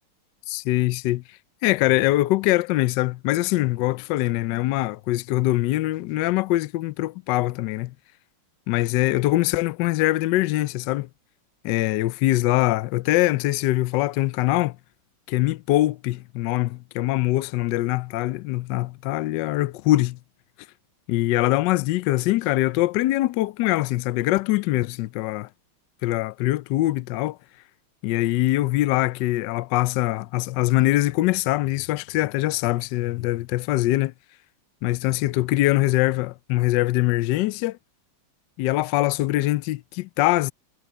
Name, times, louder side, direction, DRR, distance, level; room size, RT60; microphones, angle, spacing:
voice 1, 0.5-1.2 1.6-7.9 8.7-11.1 11.6-14.7 15.3-20.2 21.1-25.5 26.0-27.4 28.0-34.1 34.8-37.8 38.6-40.5, left 17 dB, 75° left, 1.0 m, -23 dB
omnidirectional pair, 2.3 m